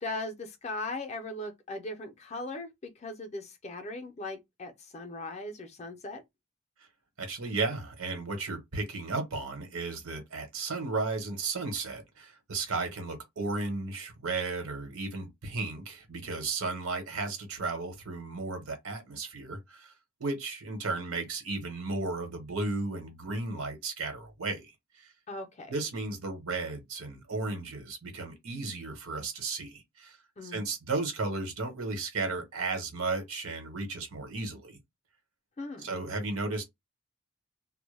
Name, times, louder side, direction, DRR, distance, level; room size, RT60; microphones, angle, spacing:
voice 1, 0.0-6.2 25.3-25.7 30.4-30.7 35.6-35.9, left 2 dB, 30° left, 0.4 m, -39 dB
voice 2, 7.2-19.9 20.2-24.7 25.0-25.1 25.7-30.2 30.4-34.8 35.8-36.6, right 3 dB, 85° right, 1.0 m, -34 dB
2.1 x 2.1 x 3.1 m
head